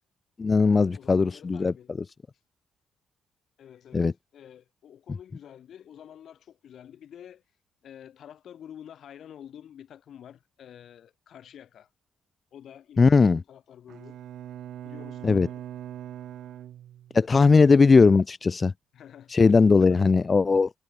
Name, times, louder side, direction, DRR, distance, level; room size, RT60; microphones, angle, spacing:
voice 1, 0.4-1.7 3.9-4.1 13.0-13.4 15.2-15.5 17.1-18.7 19.3-20.7, left 4 dB, 30° left, 0.9 m, -19 dB
voice 2, 0.9-2.1 3.6-7.4 7.8-11.9 12.5-14.2 14.8-15.6 18.9-20.1, left 9 dB, 65° left, 4.9 m, -48 dB
Bowed string instrument, 13.9-17.5, right 11 dB, 75° right, 2.0 m, -41 dB
cardioid pair, 90°, 0 cm